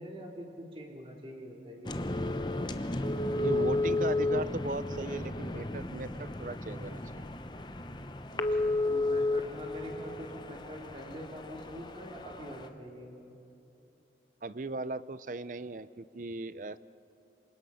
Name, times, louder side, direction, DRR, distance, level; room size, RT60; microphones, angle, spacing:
voice 1, 0.0-2.0 8.3-13.2, equal, 30° right, 0 dB, 3.1 m, -45 dB
sound 1, 1.8-12.7, left 2 dB, 25° left, 0.8 m, -33 dB
voice 2, 3.3-7.3 14.4-16.8, right 3 dB, 45° right, 16 dB, 0.5 m, -38 dB
27.5 x 24.5 x 5.7 m, 3.0 s
head